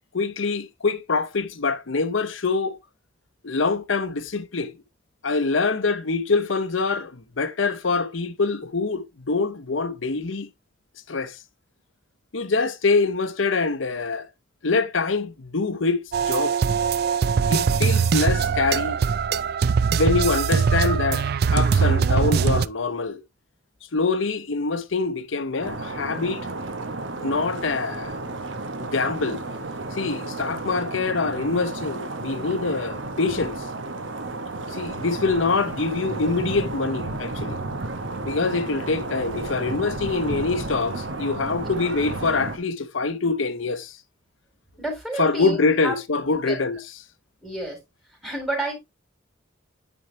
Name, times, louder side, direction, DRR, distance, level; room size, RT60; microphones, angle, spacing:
voice 1, 0.1-2.8 3.4-4.7 5.2-10.5 11.1-11.4 12.3-14.3 14.6-16.6 17.5-19.0 19.9-23.2 23.9-26.5 27.2-28.2 28.8-29.4 29.9-33.5 34.7-37.6 38.2-44.0 45.2-46.8, left 4 dB, 85° left, 0.9 m, -25 dB
sound 1, 16.1-22.7, right 6 dB, 50° right, 0.4 m, -21 dB
sound 2, 25.6-42.6, right 2 dB, 75° right, 1.2 m, -32 dB
voice 2, 44.8-46.0 46.3-46.6 47.4-47.8 48.2-48.7, right 1 dB, ahead, 3.9 m, -30 dB
9.4 x 4.6 x 3.1 m
head